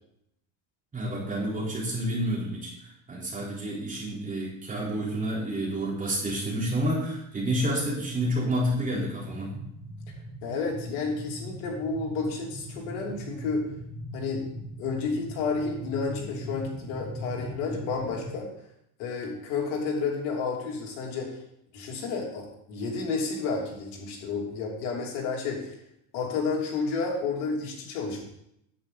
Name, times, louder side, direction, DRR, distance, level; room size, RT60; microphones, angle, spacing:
voice 1, 0.9-9.5, right 1 dB, 20° right, -4 dB, 4.0 m, -29 dB
sound 1, 7.8-18.3, right 1 dB, 55° right, 3.7 m, -40 dB
voice 2, 10.4-13.7 14.1-14.5 14.8-18.5 19.0-21.4 21.7-25.7 26.1-28.2, left 4 dB, 80° left, -1 dB, 3.1 m, -31 dB
10.0 x 8.9 x 4.0 m, 0.76 s
cardioid pair, 135°, 40 cm